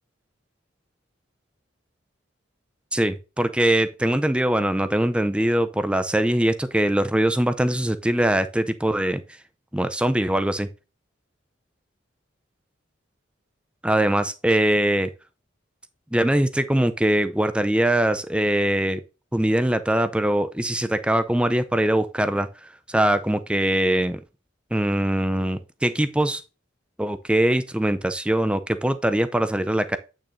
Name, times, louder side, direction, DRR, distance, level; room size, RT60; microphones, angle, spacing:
voice 1, 2.9-9.2 9.7-10.7 13.8-15.1 16.1-19.0 19.3-22.5 22.9-24.2 24.7-26.4 27.0-30.0, right 1 dB, 5° right, 0.5 m, -22 dB
8.6 x 6.2 x 2.6 m
head